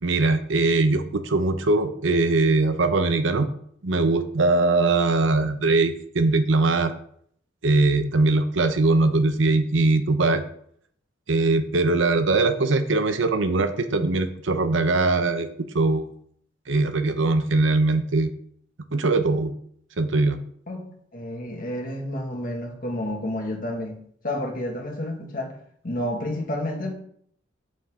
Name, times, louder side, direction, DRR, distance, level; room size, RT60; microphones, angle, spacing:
voice 1, 0.0-3.5 3.8-6.9 7.6-10.4 11.3-15.5 15.7-16.1 16.7-18.3 18.9-19.5 20.0-20.4, right 3 dB, 70° right, 9 dB, 0.8 m, -21 dB
voice 2, 20.7-25.5 25.8-26.9, left 1 dB, 45° left, 0 dB, 2.0 m, -30 dB
8.8 x 7.2 x 3.8 m, 0.63 s
head